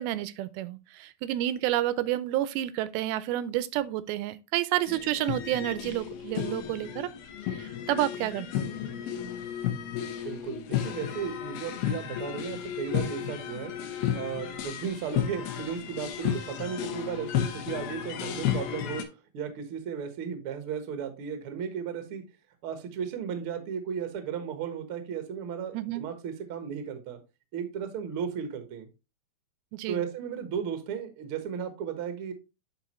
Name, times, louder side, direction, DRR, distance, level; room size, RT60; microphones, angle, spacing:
voice 1, 0.0-7.1 7.4-8.7 25.7-26.1 29.7-30.0, right 14 dB, 85° right, 2.4 m, -30 dB
sound 1, 4.9-19.0, left 10 dB, 85° left, 2.8 m, -33 dB
voice 2, 10.2-13.7 14.1-19.0 19.3-22.2 22.6-27.2 27.5-28.9 29.9-32.3, right 7 dB, 65° right, 1.3 m, -35 dB
10.5 x 4.2 x 3.0 m
omnidirectional pair, 4.3 m